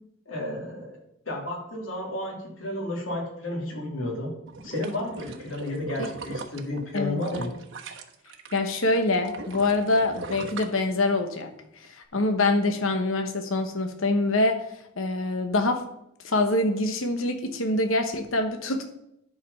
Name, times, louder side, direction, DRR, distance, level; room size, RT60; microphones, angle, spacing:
voice 1, 0.3-1.0 1.3-4.3 4.6-7.5, left 1 dB, 70° left, -2 dB, 2.9 m, -32 dB
sound 1, 4.5-8.6 8.9-11.4 11.8-11.9, right 3 dB, 70° right, 1.1 m, -39 dB
voice 2, 6.9-7.5 8.5-11.5 12.1-14.6 15.0-15.8 16.2-18.9, left 2 dB, 90° left, 6 dB, 1.1 m, -25 dB
11.0 x 4.9 x 5.6 m, 0.79 s
head